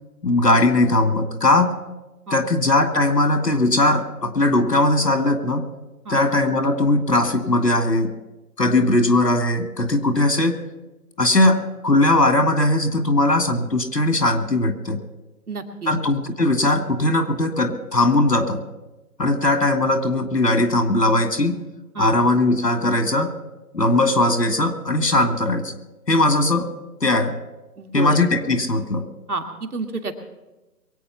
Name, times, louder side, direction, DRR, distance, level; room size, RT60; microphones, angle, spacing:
voice 1, 0.2-1.7 2.3-5.7 6.1-8.1 8.6-10.6 11.2-15.0 15.9-18.6 19.2-21.6 22.0-23.3 23.7-25.7 26.1-26.7 27.0-27.4 27.9-29.1, left 2 dB, 90° left, 7 dB, 2.4 m, -19 dB
voice 2, 15.5-15.9 21.9-22.1 27.8-28.2 29.3-30.2, right 3 dB, 65° right, 4 dB, 2.1 m, -29 dB
23.0 x 8.9 x 5.8 m, 1.1 s
figure-of-eight pair, 150°, 48 cm